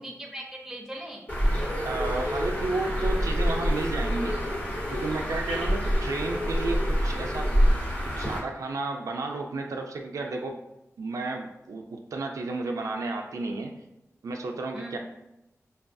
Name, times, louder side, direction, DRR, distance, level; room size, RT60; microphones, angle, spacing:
voice 1, 0.0-1.3 14.7-15.0, right 1 dB, 5° right, 0 dB, 0.6 m, -40 dB
Bird, 1.3-8.4, equal, 30° left, 1.1 m, -26 dB
voice 2, 1.8-4.4 4.9-7.6 8.0-10.6 11.0-13.8 14.2-15.0, right 3 dB, 85° right, 2 dB, 0.4 m, -32 dB
5.1 x 2.3 x 2.5 m, 0.89 s
wide cardioid pair, 110°, 5 cm